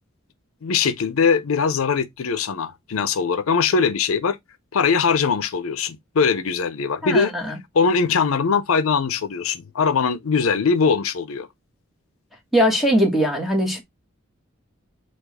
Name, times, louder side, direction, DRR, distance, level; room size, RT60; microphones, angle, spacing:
voice 1, 0.6-4.4 4.7-7.3 7.7-11.5, left 5 dB, 85° left, 0.5 m, -21 dB
voice 2, 7.0-7.5 12.5-13.8, equal, ahead, 1.2 m, -20 dB
4.6 x 2.4 x 4.0 m
head